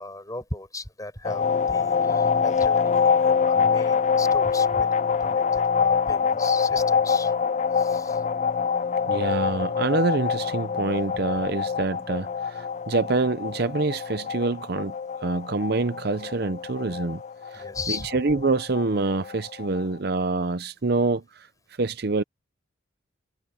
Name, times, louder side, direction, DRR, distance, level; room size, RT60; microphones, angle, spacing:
voice 1, 0.0-4.9 5.2-7.3 7.7-8.2 17.5-18.1, left 3 dB, 20° left, 5.8 m, -37 dB
sound 1, 1.2-19.8, left 6 dB, 35° left, 0.4 m, -25 dB
voice 2, 9.1-14.9 15.2-17.2 17.5-21.5 21.8-22.2, right 3 dB, 55° right, 0.7 m, -26 dB
head